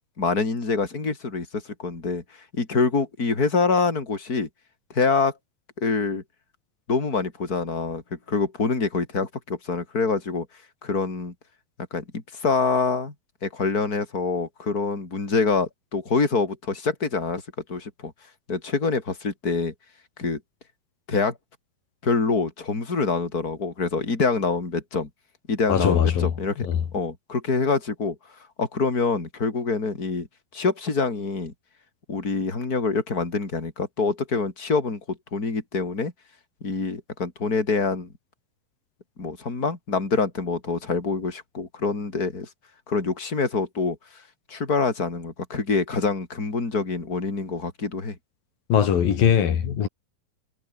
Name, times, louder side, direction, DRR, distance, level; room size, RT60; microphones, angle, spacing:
voice 1, 0.2-4.5 4.9-5.3 5.8-6.2 6.9-10.5 10.8-11.3 11.9-13.1 13.4-17.4 17.7-18.1 18.5-19.7 20.2-20.4 21.1-21.4 22.0-25.1 25.5-26.7 26.9-28.2 28.6-30.3 30.5-31.5 32.1-36.1 36.6-38.1 39.2-42.5 42.9-44.2 44.5-48.2, left 4 dB, 25° left, 4.7 m, -25 dB
voice 2, 25.7-26.3 26.6-26.8 48.7-49.9, left 8 dB, 75° left, 4.3 m, -20 dB
omnidirectional pair, 4.1 m